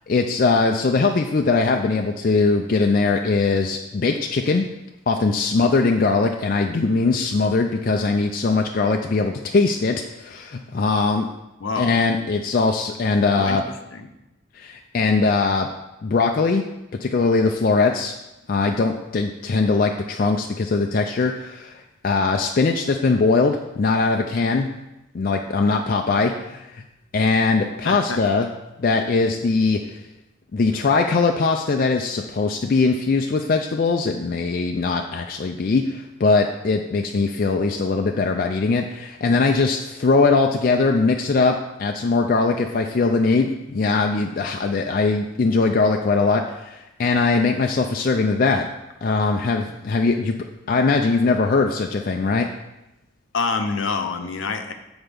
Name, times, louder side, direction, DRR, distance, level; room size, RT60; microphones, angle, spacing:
voice 1, 0.1-4.6 5.1-11.3 11.8-13.6 14.5-15.7 16.0-16.6 17.0-18.1 18.5-24.7 25.1-26.8 27.1-28.5 28.8-30.0 30.5-48.7 49.0-50.3 50.7-52.5, left 3 dB, 45° left, 3 dB, 0.4 m, -21 dB
voice 2, 11.6-12.0 13.4-13.6 13.9-14.1 27.8-28.2 53.3-54.7, left 4 dB, 70° left, 6 dB, 0.7 m, -26 dB
8.1 x 4.4 x 5.1 m, 0.95 s
head